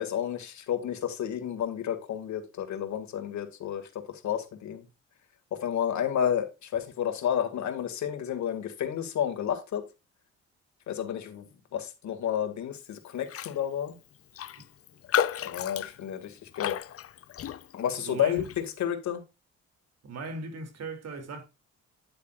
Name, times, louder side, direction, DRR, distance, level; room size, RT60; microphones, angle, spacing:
voice 1, 0.0-4.9 5.5-9.8 10.9-11.5 11.7-14.0 15.4-16.8 17.7-18.4 18.8-19.2, left 9 dB, 70° left, 2.1 m, -31 dB
Raindrop, 13.3-13.6 13.9-14.0 14.3-17.9 18.4-18.6, left 10 dB, 50° left, 0.6 m, -32 dB
voice 2, 18.0-18.5 20.0-21.5, right 3 dB, 55° right, 2.8 m, -38 dB
9.8 x 8.3 x 2.4 m
cardioid pair, 90°, 30 cm